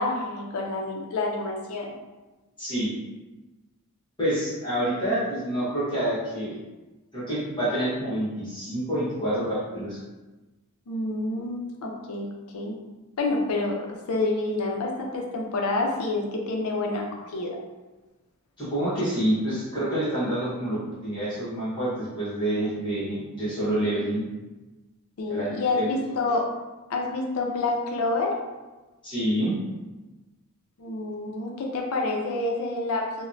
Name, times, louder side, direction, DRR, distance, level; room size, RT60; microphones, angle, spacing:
voice 1, 0.0-1.9 10.9-12.3 12.5-12.7 13.2-17.6 25.2-26.5 26.9-28.3 30.8-33.3, left 2 dB, 85° left, 1 dB, 0.5 m, -28 dB
voice 2, 2.6-2.9 4.2-6.6 7.1-10.0 18.6-24.2 25.3-25.9 29.0-29.5, right 1 dB, 25° left, -12 dB, 1.1 m, -27 dB
3.0 x 2.1 x 2.5 m, 1.2 s
head